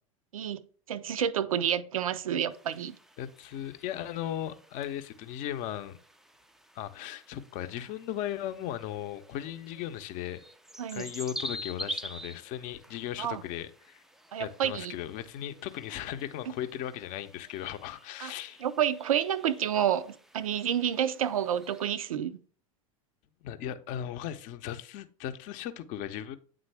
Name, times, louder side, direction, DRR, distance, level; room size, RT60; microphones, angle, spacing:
voice 1, 0.9-2.9 10.8-11.1 13.2-13.4 14.3-14.9 18.2-18.3 18.6-22.4, right 9 dB, 80° right, 0.5 m, -29 dB
sound 1, 2.5-21.9, equal, ahead, 0.3 m, -47 dB
voice 2, 3.2-6.0 6.7-10.4 10.9-14.0 14.4-18.6 23.4-26.4, left 11 dB, 50° left, 0.6 m, -37 dB
8.8 x 3.8 x 3.3 m
hypercardioid pair, 90°, 18 cm